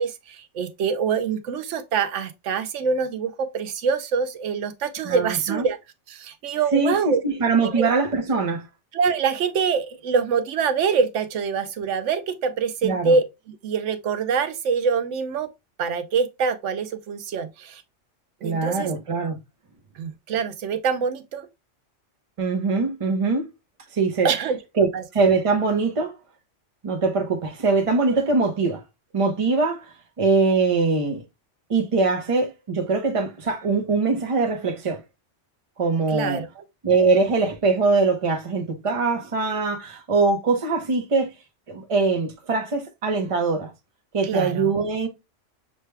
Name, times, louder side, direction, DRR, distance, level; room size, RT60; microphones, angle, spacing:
voice 1, 0.0-5.8 6.1-7.2 7.6-7.9 8.9-15.5 15.8-17.8 18.4-18.9 20.0-21.5 24.2-24.6 24.9-25.0 36.1-36.6 44.2-44.7, right 5 dB, 80° right, 1.0 m, -25 dB
voice 2, 5.0-5.6 6.7-8.7 12.8-13.1 18.4-19.4 22.4-23.5 23.9-24.3 24.8-26.1 26.8-28.8 29.1-29.9 30.2-31.2 31.7-35.0 35.8-36.4 36.8-41.3 41.7-43.7 44.1-45.1, right 4 dB, 30° right, 0.8 m, -22 dB
6.4 x 2.2 x 3.3 m
omnidirectional pair, 1.2 m